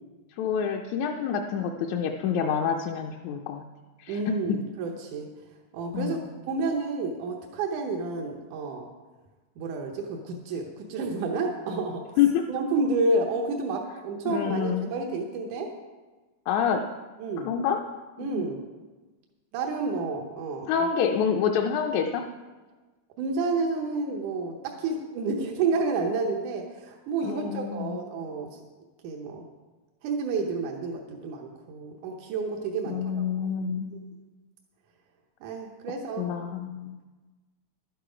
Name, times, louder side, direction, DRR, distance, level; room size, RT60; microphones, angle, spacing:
voice 1, 0.4-3.6 4.0-4.3 5.9-6.3 12.2-12.4 14.3-14.9 16.5-16.8 17.4-17.8 18.2-18.4 20.7-22.3 27.2-28.0 32.9-33.9 36.2-37.0, left 7 dB, 80° left, 1 dB, 1.9 m, -27 dB
voice 2, 4.1-5.3 5.7-8.9 9.6-12.0 12.5-15.7 17.2-17.5 18.2-18.6 19.5-20.7 23.2-28.6 29.0-29.5 30.0-33.4 35.4-36.5, right 3 dB, 85° right, 1 dB, 2.4 m, -30 dB
12.0 x 9.2 x 5.0 m, 1.3 s
omnidirectional pair, 3.4 m